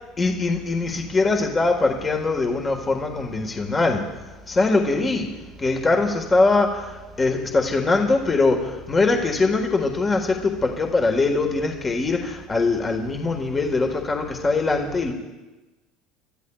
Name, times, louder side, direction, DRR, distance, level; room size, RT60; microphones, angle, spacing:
voice 1, 0.2-15.1, left 3 dB, 20° left, 2 dB, 1.6 m, -22 dB
28.5 x 13.5 x 2.4 m, 1.1 s
supercardioid pair, 115°, 0 cm